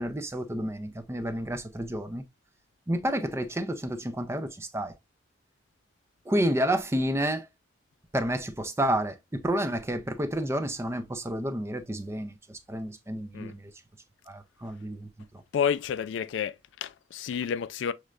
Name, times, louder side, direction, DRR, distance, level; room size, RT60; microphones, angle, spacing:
voice 1, 0.0-2.2 2.9-4.9 6.3-7.5 8.1-12.4 12.7-13.6 14.3-15.1, right 1 dB, 15° right, 0.4 m, -30 dB
voice 2, 15.5-17.9, left 7 dB, 70° left, 0.3 m, -30 dB
6.4 x 3.1 x 2.4 m
head